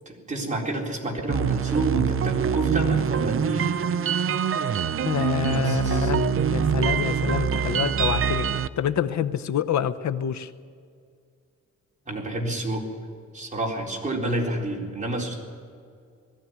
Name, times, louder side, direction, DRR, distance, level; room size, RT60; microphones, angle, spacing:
voice 1, 0.1-3.7 5.5-6.1 12.1-12.8 13.3-15.3, right 2 dB, 25° right, -2 dB, 4.1 m, -29 dB
sound 1, 1.3-8.7, right 7 dB, 45° right, 0.6 m, -24 dB
voice 2, 5.0-10.5, left 9 dB, 70° left, 11 dB, 0.8 m, -27 dB
20.5 x 15.5 x 9.5 m, 2.2 s
wide cardioid pair, 140°, 29 cm